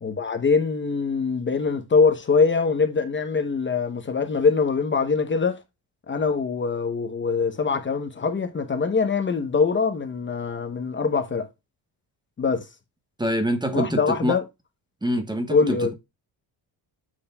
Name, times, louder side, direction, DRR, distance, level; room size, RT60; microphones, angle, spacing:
voice 1, 0.0-5.6 6.1-11.5 12.4-12.7 13.7-14.4 15.5-15.9, left 5 dB, 30° left, 0.9 m, -23 dB
voice 2, 13.2-14.4 15.0-15.9, right 1 dB, 10° right, 1.1 m, -25 dB
8.9 x 6.4 x 2.2 m
cardioid pair, 145°, 41 cm